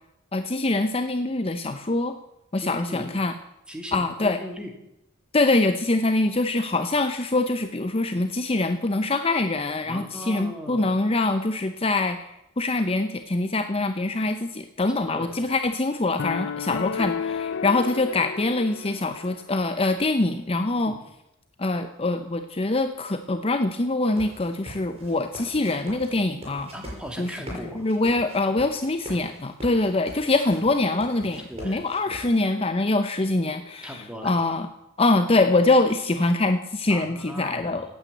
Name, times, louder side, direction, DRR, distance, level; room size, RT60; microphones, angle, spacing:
voice 1, 0.3-2.2 2.5-3.3 3.9-4.4 5.3-20.9 21.6-26.7 27.2-27.3 27.8-34.7 35.0-37.9, left 2 dB, 30° left, 8 dB, 0.7 m, -24 dB
voice 2, 2.6-3.2 3.7-4.7 9.9-10.8 15.0-15.6 20.9-21.0 26.7-27.9 31.5-32.3 33.8-34.3 36.9-38.0, equal, 5° right, 3 dB, 2.3 m, -39 dB
sound 1, 16.2-19.4, left 6 dB, 60° left, 0.4 m, -32 dB
sound 2, 24.0-32.4, equal, 30° right, 6.3 m, -42 dB
16.5 x 9.1 x 8.2 m, 0.88 s
head